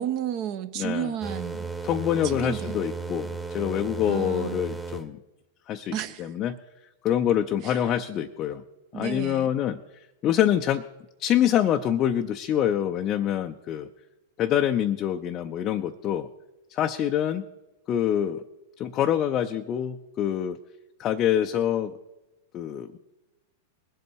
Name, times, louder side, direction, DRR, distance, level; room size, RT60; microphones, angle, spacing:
voice 1, 0.0-1.7 2.2-2.8 4.0-4.6 5.9-6.3 7.6-8.0 8.9-9.5, right 10 dB, 45° right, 9 dB, 1.1 m, -32 dB
voice 2, 0.8-1.1 1.8-5.2 5.7-6.6 7.0-8.6 8.9-10.8 11.2-13.9 14.4-16.3 16.7-17.5 17.9-18.4 18.8-20.6 21.0-22.0 22.5-23.0, left 10 dB, 35° left, 5 dB, 0.6 m, -26 dB
sound 1, 1.2-5.1, right 4 dB, ahead, 1.2 m, -35 dB
21.0 x 8.1 x 4.5 m, 1.0 s
figure-of-eight pair, 95°, 0 cm